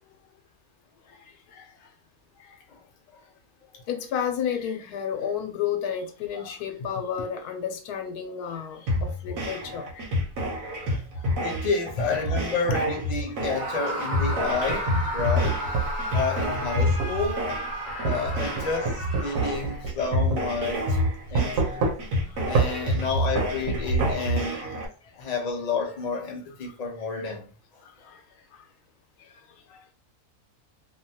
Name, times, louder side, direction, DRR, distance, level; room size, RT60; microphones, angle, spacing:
voice 1, 3.9-10.0 12.7-12.8 18.0-18.1 24.6-24.7, left 7 dB, 90° left, 1.1 m, -31 dB
sound 1, 8.9-24.9, equal, 65° right, 1.1 m, -29 dB
voice 2, 11.4-15.6 16.1-17.5 18.0-21.0 21.3-21.6 22.4-24.8 25.1-27.5, left 4 dB, 50° left, 0.5 m, -30 dB
Screaming, 13.5-19.7, right 1 dB, 35° right, 0.5 m, -33 dB
sound 2, 14.7-16.0 17.0-17.2 18.0-20.0 20.3-20.4 21.3-22.2 22.5-22.7 23.4-24.1, right 4 dB, 85° right, 1.1 m, -26 dB
2.7 x 2.2 x 2.7 m
omnidirectional pair, 1.6 m